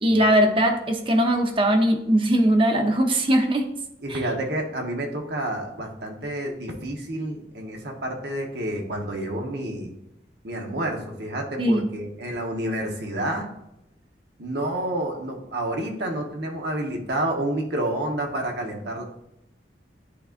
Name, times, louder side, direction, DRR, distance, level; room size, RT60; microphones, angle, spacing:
voice 1, 0.0-3.7 4.1-4.2 11.6-11.9, right 1 dB, 30° right, 4 dB, 0.8 m, -20 dB
voice 2, 4.0-9.9 10.4-13.5 14.4-19.0, right 1 dB, 70° right, 1 dB, 1.2 m, -29 dB
10.0 x 3.9 x 2.5 m, 0.82 s
head